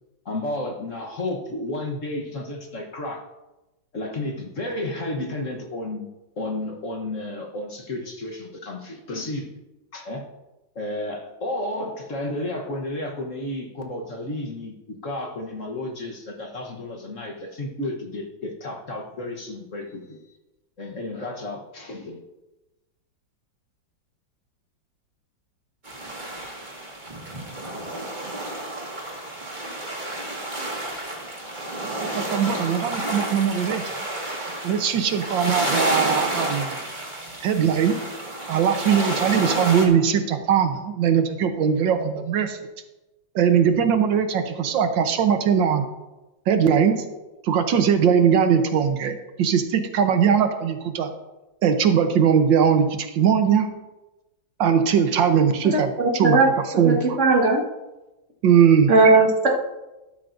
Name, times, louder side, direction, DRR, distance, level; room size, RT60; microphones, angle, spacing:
voice 1, 0.2-3.2 3.9-6.1 6.4-9.6 9.9-10.3 10.7-20.4 20.8-22.2, left 1 dB, 45° left, 1 dB, 1.4 m, -32 dB
sound 1, 25.8-39.9, right 1 dB, 25° right, 1.9 m, -30 dB
voice 2, 31.8-33.8 34.6-36.8 37.4-38.0 38.5-42.6 43.3-45.8 46.5-47.0 47.4-51.1 51.6-53.7 54.6-56.4 56.8-57.2 58.4-58.9, right 7 dB, 85° right, 7 dB, 1.6 m, -20 dB
voice 3, 55.6-56.5 56.7-57.6 58.9-59.5, right 3 dB, 40° right, 0 dB, 1.8 m, -18 dB
13.0 x 11.5 x 2.6 m, 1.0 s
omnidirectional pair, 2.0 m